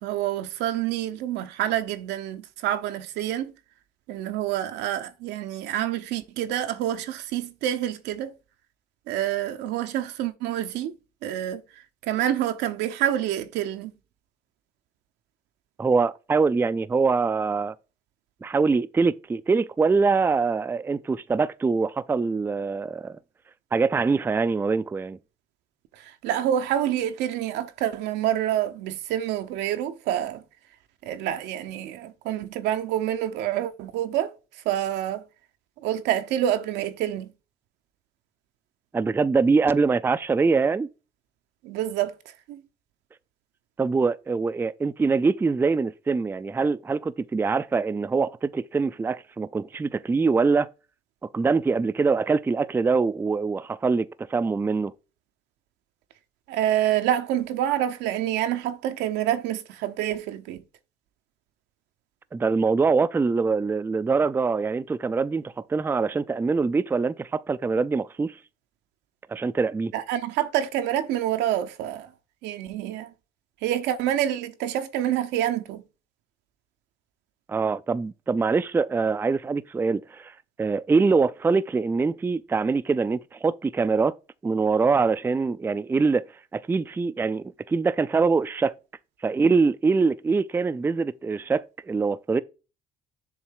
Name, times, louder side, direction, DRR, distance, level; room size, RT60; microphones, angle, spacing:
voice 1, 0.0-3.5 4.1-8.3 9.1-10.9 11.2-11.6 12.0-13.9 26.0-30.4 31.0-34.3 34.6-35.2 35.8-37.3 41.6-42.1 42.5-42.6 56.5-60.6 69.9-72.1 72.4-73.1 73.6-75.8, right 11 dB, 90° right, 0.9 m, -27 dB
voice 2, 15.8-17.7 18.4-23.2 23.7-25.2 38.9-40.9 43.8-50.7 51.3-54.9 62.3-68.4 69.3-69.9 77.5-84.1 84.4-86.2 86.5-88.7 89.2-92.4, right 4 dB, 15° right, 0.4 m, -24 dB
7.2 x 3.2 x 4.6 m
cardioid pair, 110°, 17 cm